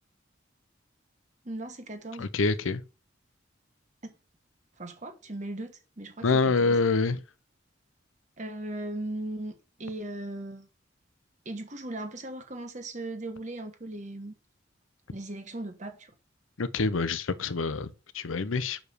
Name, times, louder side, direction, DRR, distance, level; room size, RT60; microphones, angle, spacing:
voice 1, 1.4-2.3 4.0-4.1 4.8-6.8 8.4-10.7 11.4-14.3 15.1-16.1, right 1 dB, 40° right, 1.3 m, -38 dB
voice 2, 2.2-2.8 6.2-7.2 16.6-18.8, left 3 dB, 90° left, 0.7 m, -26 dB
6.3 x 5.0 x 6.7 m
head